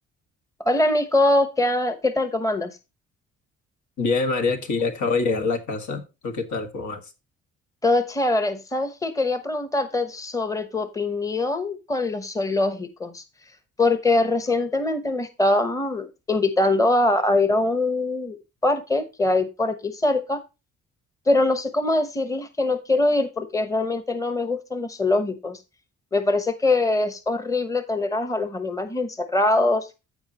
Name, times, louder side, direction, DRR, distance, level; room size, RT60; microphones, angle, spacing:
voice 1, 0.6-2.7 7.8-13.2 13.8-18.4 18.6-20.4 21.3-25.6 26.1-29.9, left 2 dB, 10° left, 1.0 m, -23 dB
voice 2, 4.0-7.1, left 4 dB, 70° left, 2.0 m, -25 dB
14.5 x 4.9 x 2.9 m
cardioid pair, 90°, 30 cm